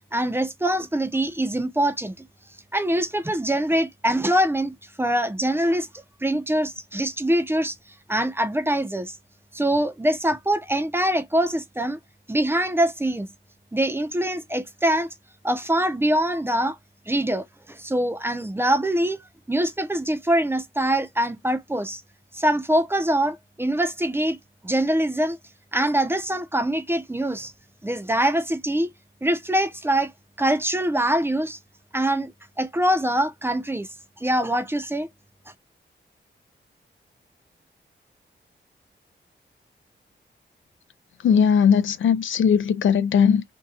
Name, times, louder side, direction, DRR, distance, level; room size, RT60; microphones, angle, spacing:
voice 1, 0.1-2.1 2.7-7.8 8.1-9.1 9.5-12.0 12.3-13.3 13.7-15.1 15.4-16.8 17.1-19.2 19.5-22.0 22.3-24.4 24.6-25.4 25.7-27.5 27.8-28.9 29.2-30.1 30.4-31.6 31.9-32.3 32.6-33.9 34.2-35.1, right 1 dB, 10° right, 0.5 m, -24 dB
voice 2, 41.2-43.4, left 7 dB, 80° left, 0.5 m, -19 dB
2.7 x 2.2 x 3.8 m
wide cardioid pair, 95°, 20 cm